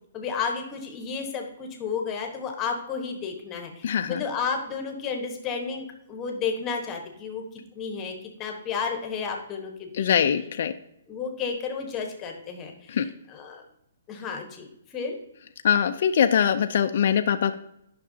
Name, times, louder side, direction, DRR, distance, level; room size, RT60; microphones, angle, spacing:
voice 1, 0.1-10.3 11.1-13.0 13.3-13.6 14.1-14.7 14.9-15.2, left 5 dB, 15° left, 3 dB, 1.1 m, -32 dB
voice 2, 3.8-4.2 9.9-10.7 12.9-13.1 15.6-17.6, left 8 dB, 50° left, 7 dB, 0.4 m, -22 dB
10.0 x 6.0 x 2.7 m, 0.75 s
hypercardioid pair, 165°, 0 cm